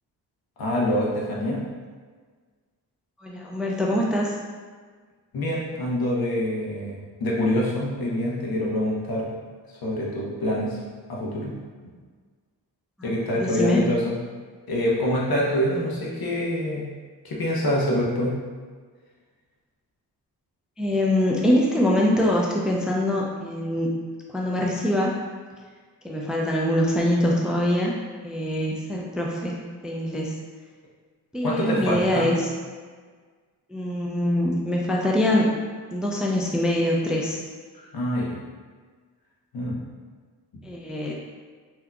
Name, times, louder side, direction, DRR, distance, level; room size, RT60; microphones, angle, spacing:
voice 1, 0.6-1.6 5.3-9.3 9.8-10.8 11.1-11.5 13.0-14.1 14.7-16.9 17.2-18.4 31.4-32.3 37.7-38.4 39.5-39.8 40.5-40.6, left 1 dB, 60° left, -4 dB, 1.0 m, -25 dB
voice 2, 3.2-4.4 13.0-13.8 20.8-23.9 24.3-25.2 26.0-27.9 28.2-30.3 31.3-32.5 33.7-35.5 35.9-37.4 40.6-41.1, left 1 dB, ahead, -3 dB, 0.4 m, -24 dB
3.5 x 2.8 x 2.3 m, 1.5 s
cardioid pair, 55°, 40 cm